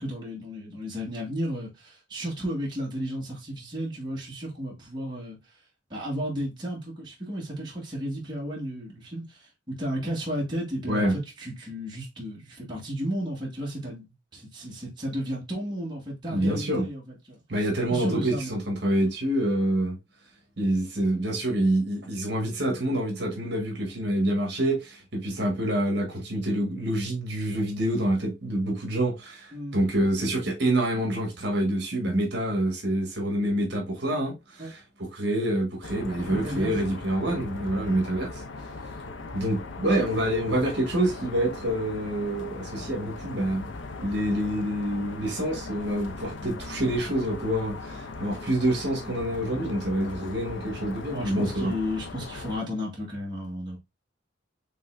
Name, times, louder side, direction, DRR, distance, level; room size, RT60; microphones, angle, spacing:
voice 1, 0.0-5.4 5.9-17.0 17.3-17.4 17.9-18.6 29.5-29.8 34.6-34.7 36.2-36.8 37.8-38.0 51.1-53.8, equal, 25° right, 1.7 m, -33 dB
voice 2, 16.3-16.9 17.5-20.0 20.6-38.3 39.3-43.7 44.0-51.7, right 1 dB, 55° right, 1.7 m, -27 dB
sound 1, 35.8-52.6, left 3 dB, 70° left, 0.6 m, -39 dB
5.4 x 3.4 x 2.6 m
head